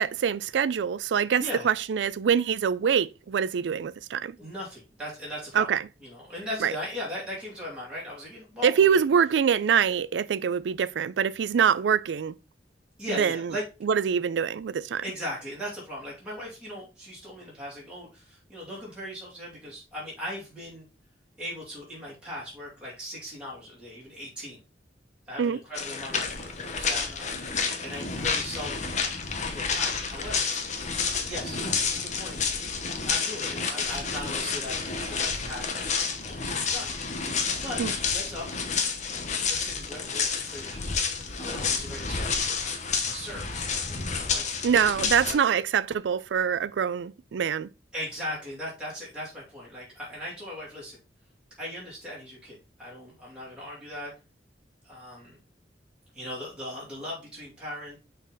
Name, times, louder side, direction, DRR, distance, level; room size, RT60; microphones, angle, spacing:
voice 1, 0.0-4.4 5.5-5.8 6.6-6.7 8.6-12.3 13.2-13.5 13.8-15.0 25.4-25.6 37.8-37.9 44.6-47.7, right 7 dB, 90° right, 0.4 m, -24 dB
voice 2, 4.4-5.7 6.0-9.0 13.0-13.6 15.0-20.8 21.4-24.6 25.3-28.9 29.5-30.5 31.2-32.4 33.0-35.7 36.2-36.9 37.3-38.5 39.5-40.8 41.4-42.5 42.9-45.4 47.9-51.0 51.6-54.1 54.8-55.4 56.1-58.0, left 1 dB, 5° right, 2.5 m, -39 dB
sound 1, 25.7-45.3, left 5 dB, 40° left, 0.9 m, -30 dB
6.2 x 3.9 x 3.9 m
head